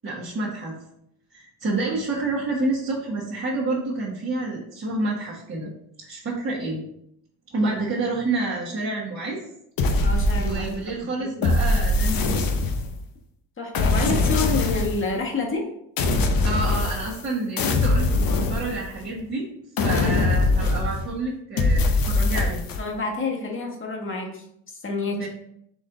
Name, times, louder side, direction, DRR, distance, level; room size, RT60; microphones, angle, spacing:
voice 1, 0.0-0.7 1.3-5.7 6.0-6.8 7.5-9.4 10.3-12.5 16.4-19.5 19.8-22.6 25.2-25.3, right 2 dB, 30° right, -8 dB, 1.3 m, -28 dB
sound 1, 9.8-10.9 11.4-13.0 13.7-15.1 16.0-17.3 17.6-19.2 19.8-21.1 21.6-22.8, left 2 dB, 55° left, 0.8 m, -22 dB
voice 2, 10.0-11.5 13.6-15.7 22.8-24.4 24.8-25.3, left 3 dB, 30° left, 0 dB, 1.3 m, -28 dB
4.2 x 3.2 x 3.7 m, 0.76 s
supercardioid pair, 75°, 42 cm